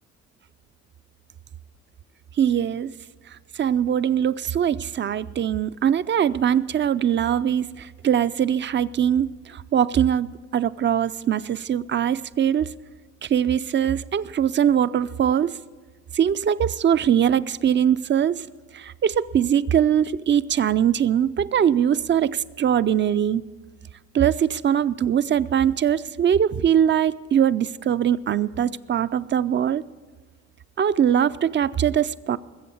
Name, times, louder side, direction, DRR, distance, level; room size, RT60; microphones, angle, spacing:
voice 1, 2.4-2.9 3.3-10.3 10.5-12.7 13.2-15.6 16.1-18.5 18.7-23.4 24.1-29.8 30.8-32.4, right 9 dB, 40° right, 0.5 m, -22 dB
21.0 x 7.7 x 7.1 m
cardioid pair, 90°, 30 cm